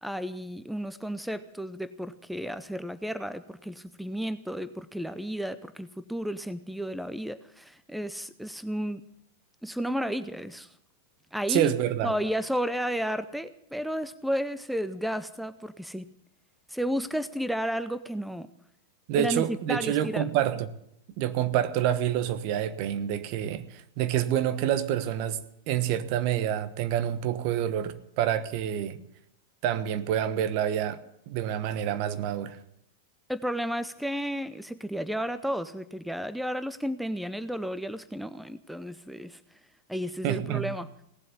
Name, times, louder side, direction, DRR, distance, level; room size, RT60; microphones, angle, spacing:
voice 1, 0.0-9.0 9.6-10.7 11.3-11.7 12.0-16.1 16.7-18.5 19.1-20.3 33.3-39.4 39.9-40.9, equal, ahead, 0.7 m, -32 dB
voice 2, 11.5-12.1 19.1-20.7 21.2-25.4 25.7-29.0 29.6-31.0 31.3-32.6 40.2-40.7, right 11 dB, 50° right, 1.2 m, -27 dB
18.0 x 7.7 x 9.8 m
hypercardioid pair, 100°, 0 cm